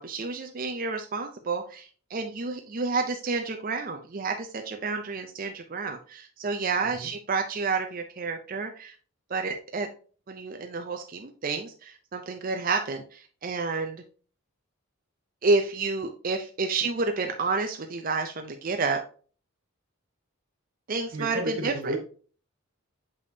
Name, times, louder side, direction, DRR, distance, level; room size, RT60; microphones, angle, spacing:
voice 1, 0.0-8.9 9.3-9.9 10.3-14.0 15.4-19.0 20.9-21.9, right 4 dB, 40° right, 0.5 m, -30 dB
voice 2, 21.1-22.0, right 2 dB, 85° right, 1.7 m, -33 dB
6.8 x 5.1 x 2.8 m
head